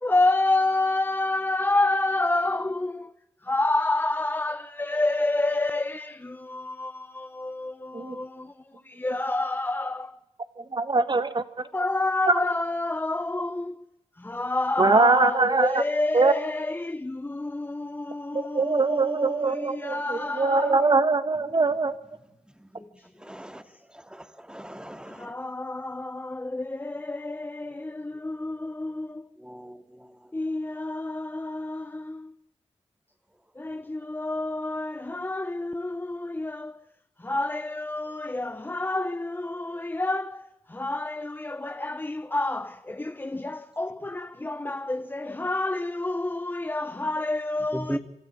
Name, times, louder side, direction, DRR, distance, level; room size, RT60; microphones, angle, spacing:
voice 1, 0.0-3.1 3.5-8.5 8.9-10.1 11.7-13.8 14.2-21.0 25.2-29.2 30.3-32.3 33.6-36.8 37.2-40.4 40.7-48.0, left 2 dB, 15° left, 0.7 m, -29 dB
voice 2, 10.7-11.4 12.3-12.4 14.8-15.8 16.1-16.3 18.3-21.9, right 3 dB, 40° right, 1.6 m, -22 dB
voice 3, 23.3-23.6 24.5-25.3 29.4-29.8 47.7-48.0, right 1 dB, 5° right, 2.1 m, -35 dB
26.5 x 13.0 x 8.4 m
cardioid pair, 60°, 12 cm